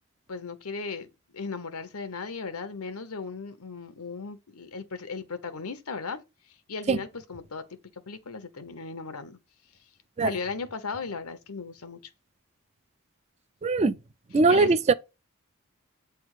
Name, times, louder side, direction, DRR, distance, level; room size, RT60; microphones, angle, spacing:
voice 1, 0.3-1.1 1.3-6.2 6.7-7.6 8.1-9.4 10.2-12.0 14.5-14.7, left 4 dB, 90° left, 1.0 m, -36 dB
voice 2, 13.6-14.0 14.3-14.9, right 3 dB, 30° right, 0.4 m, -21 dB
8.1 x 3.4 x 4.8 m
head